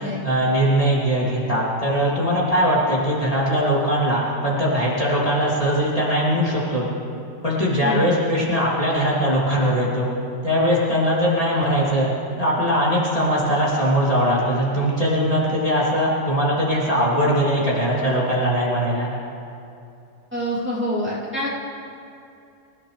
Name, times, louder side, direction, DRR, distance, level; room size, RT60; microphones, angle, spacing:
voice 1, 0.0-6.9 7.4-10.1 10.4-12.1 12.4-19.1, equal, 25° left, -7 dB, 3.0 m, -21 dB
voice 2, 7.8-8.1 20.3-21.5, equal, 10° right, -8 dB, 3.4 m, -26 dB
27.0 x 15.5 x 3.4 m, 2.6 s
omnidirectional pair, 1.4 m